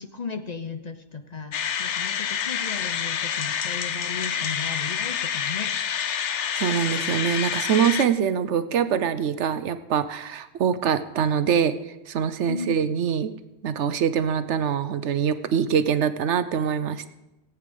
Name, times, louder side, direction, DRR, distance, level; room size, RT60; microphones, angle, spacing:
voice 1, 0.0-5.7 10.7-10.8 12.5-12.8, left 5 dB, 45° left, 8 dB, 0.7 m, -35 dB
sound 1, 1.5-8.0, left 8 dB, 85° left, 1.1 m, -28 dB
voice 2, 6.5-11.7 12.1-13.3 13.6-17.1, right 7 dB, 80° right, 12 dB, 1.1 m, -24 dB
17.5 x 8.4 x 5.2 m, 0.95 s
omnidirectional pair, 1.2 m